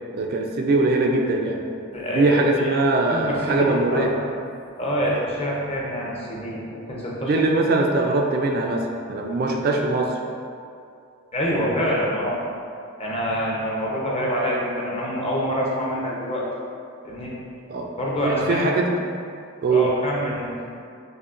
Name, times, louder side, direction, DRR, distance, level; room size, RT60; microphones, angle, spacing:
voice 1, 0.1-1.6 2.1-4.1 7.2-10.2 17.7-17.9 18.2-18.9 19.6-19.9, right 2 dB, 50° right, 2 dB, 0.3 m, -21 dB
voice 2, 1.9-2.7 3.1-4.3 4.8-7.3 11.3-12.4 13.0-16.5 17.0-17.4 18.0-18.7 19.7-20.5, equal, 30° left, -5 dB, 0.6 m, -26 dB
6.4 x 2.1 x 2.4 m, 2.4 s
head